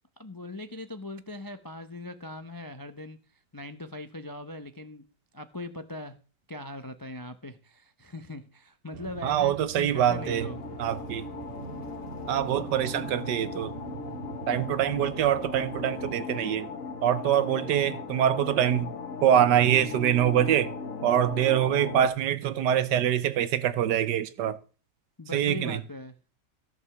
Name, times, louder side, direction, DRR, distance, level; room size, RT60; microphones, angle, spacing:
voice 1, 0.2-3.2 3.5-5.0 5.3-6.2 6.5-10.6 25.2-26.1, left 2 dB, 30° left, 0.3 m, -40 dB
sound 1, 8.9-16.1, right 6 dB, 55° right, 0.7 m, -43 dB
voice 2, 9.2-10.5 10.8-11.3 12.3-13.7 14.5-16.7 17.0-18.9 19.2-20.7 21.0-24.6 25.3-25.8, right 10 dB, 75° right, 1.4 m, -24 dB
sound 2, 10.0-22.1, left 5 dB, 55° left, 1.5 m, -38 dB
14.0 x 5.3 x 7.1 m
omnidirectional pair, 1.9 m